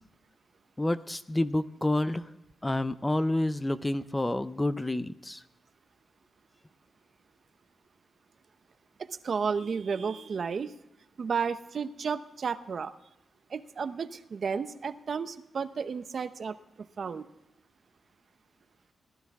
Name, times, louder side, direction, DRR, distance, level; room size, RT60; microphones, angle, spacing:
voice 1, 0.8-2.3 2.6-5.4, left 1 dB, 15° left, 13 dB, 0.5 m, -29 dB
voice 2, 9.0-10.7 11.2-12.9 13.5-16.6 17.0-17.2, right 6 dB, 50° right, 11 dB, 0.7 m, -32 dB
19.0 x 12.5 x 3.6 m, 0.91 s
cardioid pair, 110°, 0 cm